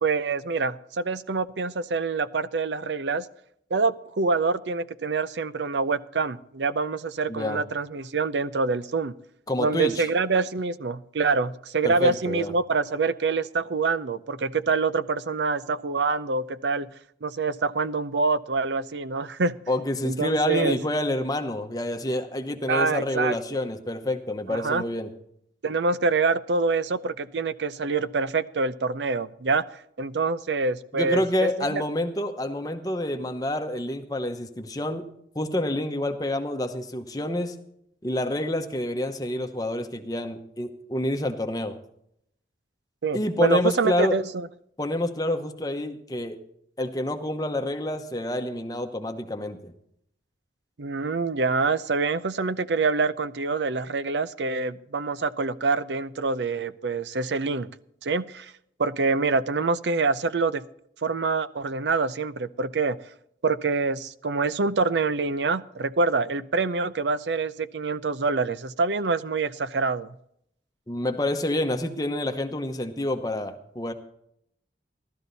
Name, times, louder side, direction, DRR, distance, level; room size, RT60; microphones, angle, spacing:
voice 1, 0.0-3.3 3.7-9.1 9.6-16.9 17.2-19.6 20.0-20.8 22.7-23.6 24.5-24.8 25.6-29.6 30.0-31.8 43.0-44.5 50.8-57.7 58.0-58.5 58.8-60.6 61.0-63.0 63.4-70.1, right 4 dB, 90° right, 14 dB, 0.6 m, -26 dB
voice 2, 7.3-7.6 9.5-10.1 11.8-12.5 19.7-25.1 30.9-35.0 35.3-37.5 38.0-41.8 43.1-44.1 44.8-46.4 46.8-49.7 70.9-73.9, left 1 dB, 20° left, 6 dB, 0.9 m, -28 dB
14.5 x 12.5 x 4.0 m, 0.72 s
head